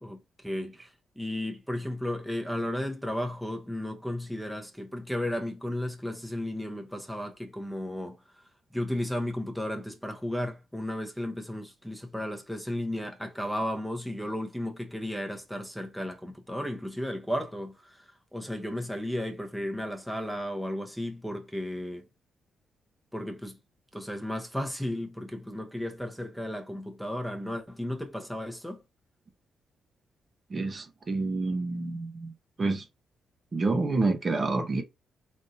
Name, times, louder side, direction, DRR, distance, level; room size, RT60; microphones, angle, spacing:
voice 1, 0.0-8.2 8.7-22.1 23.1-23.6 23.9-28.8, left 1 dB, ahead, 0.9 m, -34 dB
voice 2, 30.5-32.3 32.6-32.8 33.5-34.8, right 3 dB, 35° right, 0.7 m, -28 dB
3.7 x 2.7 x 2.7 m
cardioid pair, 75°, 0 cm